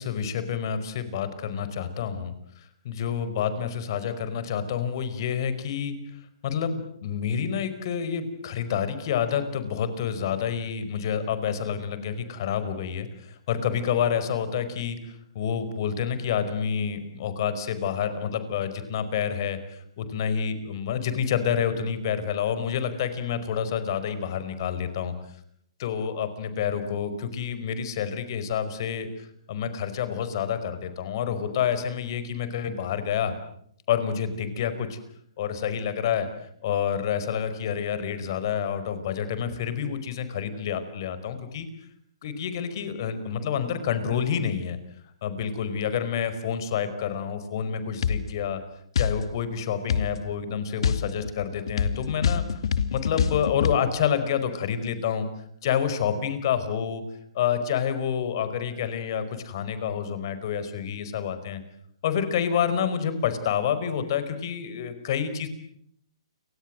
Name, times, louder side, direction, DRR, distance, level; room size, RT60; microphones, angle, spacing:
voice 1, 0.0-5.9 6.4-15.0 15.3-25.1 25.8-33.3 33.9-35.0 35.4-36.3 36.6-41.7 42.2-44.8 45.2-48.6 49.0-52.4 52.9-55.3 55.6-57.0 57.3-61.6 62.0-65.5, left 8 dB, 45° left, 12 dB, 4.9 m, -28 dB
sound 1, 48.0-48.3 49.0-49.2 49.9-50.1 50.8-53.8, left 7 dB, 65° left, 2.4 m, -25 dB
29.5 x 24.5 x 7.7 m, 0.70 s
hypercardioid pair, 150°, 3 cm